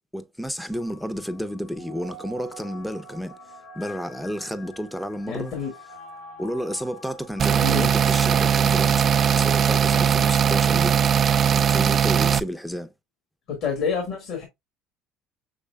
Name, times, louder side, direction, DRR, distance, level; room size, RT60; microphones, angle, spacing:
voice 1, 0.1-3.4 3.7-5.5 6.4-11.0 11.5-12.9, equal, 5° left, 0.6 m, -31 dB
sound 1, 0.7-12.4, left 2 dB, 90° left, 1.6 m, -45 dB
voice 2, 5.3-5.7 7.6-7.9 13.5-14.4, left 6 dB, 65° left, 1.8 m, -28 dB
sound 2, 7.4-12.4, right 8 dB, 40° right, 0.4 m, -19 dB
6.5 x 3.2 x 2.3 m
supercardioid pair, 100°, 0 cm